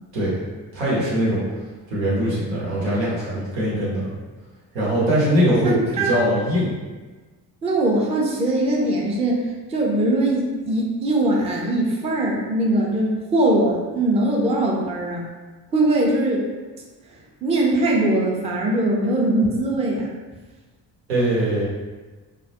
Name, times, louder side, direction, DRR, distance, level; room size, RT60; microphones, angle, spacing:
voice 1, 0.7-1.4 1.9-4.1 4.7-6.7 21.1-21.7, equal, 85° right, -7 dB, 0.8 m, -21 dB
voice 2, 5.6-6.2 7.6-9.4 9.7-15.3 15.7-16.4 17.4-20.1, right 1 dB, 15° right, -2 dB, 0.4 m, -21 dB
2.2 x 2.1 x 2.7 m, 1.3 s
hypercardioid pair, 45°, 49 cm